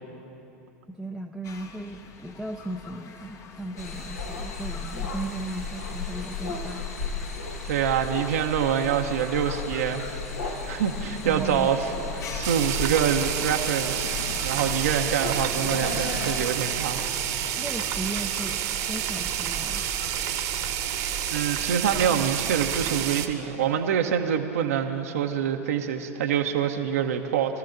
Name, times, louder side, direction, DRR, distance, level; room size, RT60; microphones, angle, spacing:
voice 1, 0.9-6.8 11.2-11.7 17.5-18.6 18.9-19.8, right 2 dB, ahead, 4 dB, 0.6 m, -36 dB
janata curfew, 1.4-20.2, left 4 dB, 35° left, 1.0 m, -45 dB
sound 1, 3.8-16.5, left 4 dB, 75° left, 1.6 m, -34 dB
voice 2, 7.6-10.2 10.4-11.9 12.2-17.1 21.3-27.6, right 8 dB, 65° right, 3 dB, 0.9 m, -26 dB
sound 2, 12.4-23.3, right 10 dB, 45° right, 1.1 m, -29 dB
26.0 x 13.5 x 2.6 m, 2.9 s
figure-of-eight pair, 85°, 8 cm